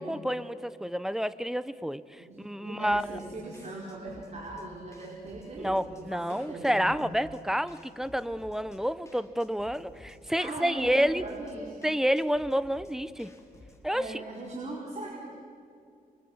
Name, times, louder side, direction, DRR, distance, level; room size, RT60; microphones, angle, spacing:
voice 1, 0.0-3.2 5.6-11.2 11.8-13.3 13.8-14.2, equal, 5° right, 15 dB, 0.9 m, -29 dB
voice 2, 2.2-6.8 10.4-11.9 13.9-15.3, right 2 dB, 45° right, -3 dB, 4.9 m, -40 dB
sound 1, 2.9-13.9, left 1 dB, 20° left, 4.1 m, -54 dB
29.0 x 24.5 x 8.0 m, 2.4 s
cardioid pair, 95°, 16 cm